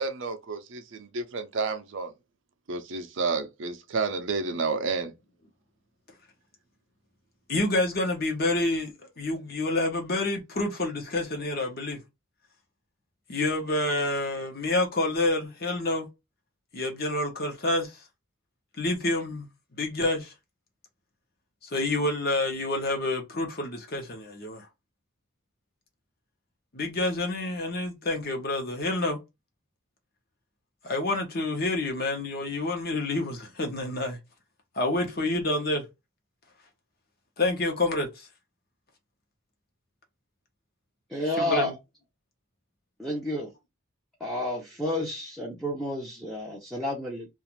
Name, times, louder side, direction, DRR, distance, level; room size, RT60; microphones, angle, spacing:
voice 1, 0.0-2.1 2.7-5.1, right 4 dB, 60° right, 0.5 m, -30 dB
voice 2, 7.5-12.0 13.3-16.1 16.7-18.0 18.8-19.5 19.8-20.3 21.6-24.7 26.7-29.2 30.8-34.2 34.7-35.8 37.4-38.3 41.4-41.7, left 2 dB, 45° left, 0.8 m, -28 dB
voice 3, 41.1-41.7 43.0-43.5 44.2-47.3, left 1 dB, ahead, 0.5 m, -30 dB
2.5 x 2.4 x 3.0 m
head